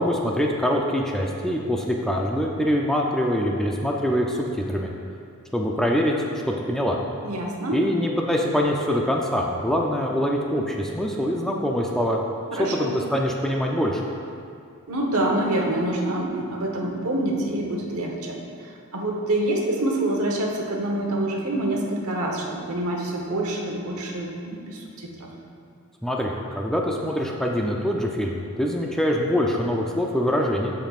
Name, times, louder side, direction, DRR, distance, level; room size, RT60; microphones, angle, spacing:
voice 1, 0.0-4.9 5.5-6.2 6.5-7.0 7.7-12.2 12.6-14.0 26.0-30.7, equal, ahead, -1 dB, 0.4 m, -24 dB
voice 2, 7.2-7.8 12.5-12.9 14.9-25.3, right 1 dB, 75° right, -1 dB, 1.1 m, -26 dB
13.0 x 5.3 x 2.4 m, 2.4 s
head